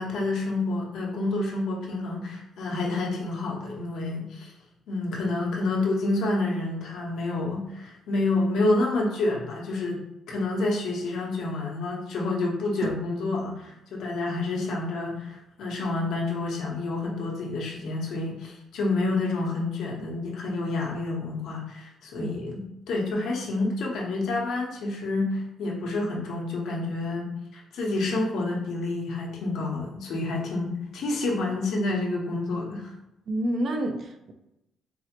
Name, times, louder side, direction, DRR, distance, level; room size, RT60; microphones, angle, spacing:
voice 1, 0.0-4.5 4.9-10.0 10.3-32.9, left 2 dB, 80° left, -2 dB, 0.9 m, -28 dB
voice 2, 33.3-34.3, right 1 dB, 55° right, 4 dB, 0.5 m, -28 dB
4.3 x 2.0 x 2.9 m, 0.88 s
cardioid pair, 90°, 0 cm